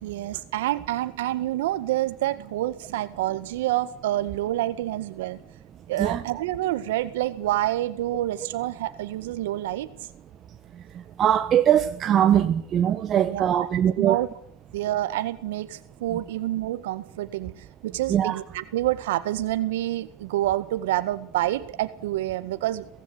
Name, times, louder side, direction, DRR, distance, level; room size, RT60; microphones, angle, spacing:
voice 1, 0.0-5.4 5.9-9.9 13.1-13.7 14.0-14.3 14.7-22.9, right 15 dB, 85° right, 1.7 m, -28 dB
voice 2, 11.2-14.2 18.1-18.4, right 10 dB, 35° right, 1.1 m, -21 dB
18.0 x 15.5 x 9.9 m
supercardioid pair, 125°, 0 cm